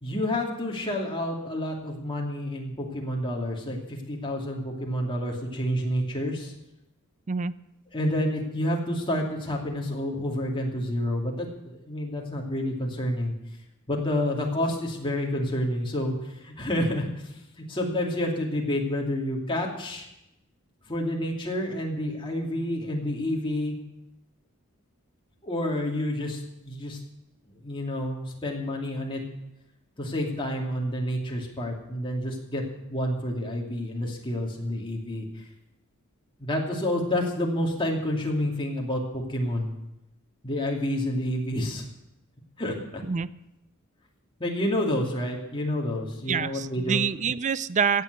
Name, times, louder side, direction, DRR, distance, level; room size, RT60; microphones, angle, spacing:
voice 1, 0.0-6.5 7.9-13.3 13.9-17.1 17.7-20.1 20.9-23.8 25.4-27.0 27.6-29.2 30.0-32.6 32.9-35.4 36.4-39.7 40.4-41.8 42.6-43.0 44.4-47.0, left 1 dB, 25° left, -1 dB, 2.6 m, -29 dB
voice 2, 46.3-48.0, right 6 dB, 35° right, 16 dB, 0.4 m, -26 dB
16.0 x 7.6 x 8.1 m, 0.88 s
head